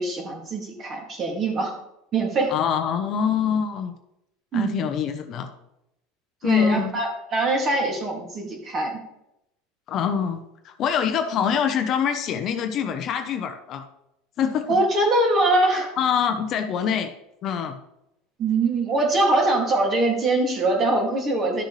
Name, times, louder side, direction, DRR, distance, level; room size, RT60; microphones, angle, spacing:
voice 1, 0.0-1.7 2.1-2.5 4.5-4.8 6.4-9.0 14.7-15.9 18.4-21.6, right 2 dB, 30° right, 1 dB, 2.4 m, -23 dB
voice 2, 2.5-3.9 4.5-5.5 6.4-6.9 9.9-13.8 14.4-14.8 16.0-17.1 17.4-17.8, left 7 dB, 40° left, 6 dB, 0.9 m, -24 dB
12.0 x 6.5 x 3.3 m, 0.83 s
supercardioid pair, 145°, 0 cm